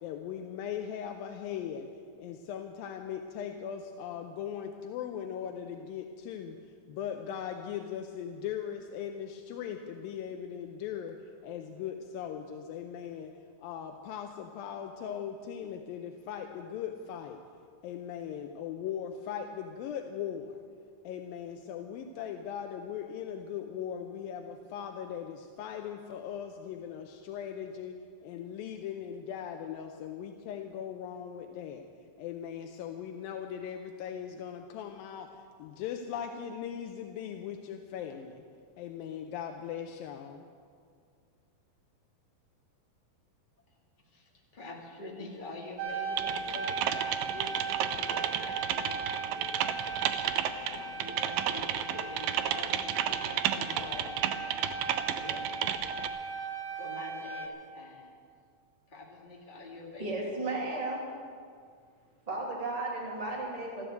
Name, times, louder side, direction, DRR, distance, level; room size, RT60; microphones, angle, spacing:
voice 1, 0.0-1.9 2.2-6.6 6.9-11.2 11.4-13.3 13.6-17.4 17.8-20.6 21.0-31.9 32.2-35.3 35.6-38.4 38.8-40.5, left 8 dB, 85° left, 5 dB, 2.5 m, -39 dB
voice 2, 44.0-50.1 50.7-55.6 56.8-58.1 58.9-60.4, left 2 dB, 15° left, -2 dB, 1.9 m, -46 dB
sound 1, 45.8-57.5, right 4 dB, 65° right, 2.6 m, -38 dB
Typing, 46.2-56.1, right 10 dB, 80° right, 2.3 m, -32 dB
voice 3, 60.0-61.0 62.3-63.9, right 2 dB, 10° right, -3 dB, 2.5 m, -34 dB
14.0 x 12.5 x 7.9 m, 2.1 s
omnidirectional pair, 4.1 m